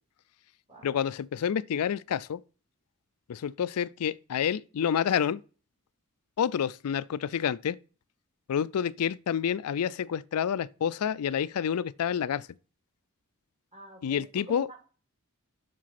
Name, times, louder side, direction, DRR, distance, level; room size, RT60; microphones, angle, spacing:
voice 1, 0.8-2.4 3.3-5.4 6.4-7.8 8.5-12.5 14.0-14.7, left 8 dB, 85° left, 0.4 m, -28 dB
voice 2, 13.7-14.8, right 1 dB, 30° right, 3.0 m, -47 dB
7.4 x 6.1 x 5.8 m
head